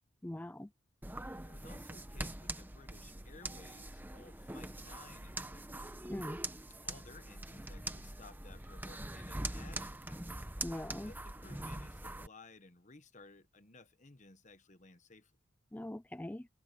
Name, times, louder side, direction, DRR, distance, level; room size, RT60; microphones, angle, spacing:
voice 1, 0.2-0.7 6.0-6.4 10.6-11.1 15.7-16.5, left 1 dB, 10° left, 0.4 m, -42 dB
sound 1, 1.0-12.3, right 1 dB, 10° right, 1.0 m, -43 dB
voice 2, 1.3-5.7 6.8-10.4 11.0-15.3, left 3 dB, 35° left, 1.3 m, -57 dB
head